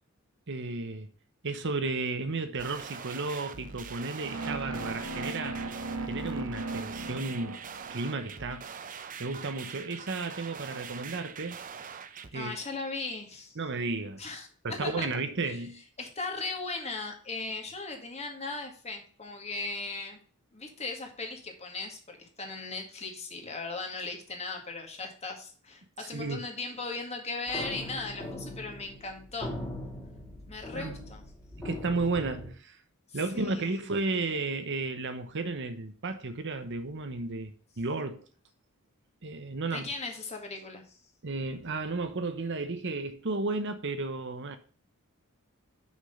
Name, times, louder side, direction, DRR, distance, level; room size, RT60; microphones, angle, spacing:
voice 1, 0.5-1.1 1.4-5.6 6.1-7.6 7.9-8.7 9.2-11.6 12.3-12.6 13.6-14.3 14.6-15.8 26.0-26.5 30.7-30.9 31.6-32.8 33.1-38.2 39.2-39.9 41.2-44.6, right 3 dB, 55° right, 1.0 m, -33 dB
sound 1, 2.6-12.3, right 6 dB, 40° right, 0.6 m, -43 dB
sound 2, 4.2-8.3, right 3 dB, 80° right, 1.4 m, -37 dB
voice 2, 12.3-13.6 14.2-15.1 15.4-15.6 16.0-20.2 20.5-29.5 30.5-31.3 33.1-33.8 39.6-40.8, left 3 dB, 30° left, 2.0 m, -38 dB
sound 3, 27.5-32.5, left 1 dB, 10° left, 2.5 m, -40 dB
6.1 x 6.1 x 5.6 m
head